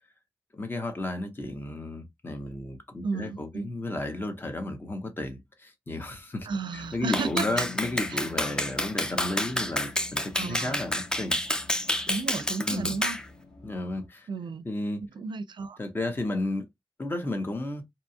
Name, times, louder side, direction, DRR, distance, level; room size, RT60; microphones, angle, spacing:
voice 1, 0.5-6.5 6.7-11.4 12.6-13.0 13.6-14.3 14.6-15.0 15.8-16.7 17.0-17.8, left 2 dB, 25° left, 0.7 m, -33 dB
voice 2, 3.0-3.8 6.5-7.6 8.1-8.2 10.4-10.8 12.1-13.2 14.3-14.6 15.2-15.8, right 4 dB, 65° right, 0.4 m, -33 dB
sound 1, 6.4-14.1, left 5 dB, 55° left, 1.1 m, -47 dB
Clapping, 7.1-13.2, left 1 dB, 10° left, 0.4 m, -29 dB
2.8 x 2.3 x 2.6 m
wide cardioid pair, 130°, 8 cm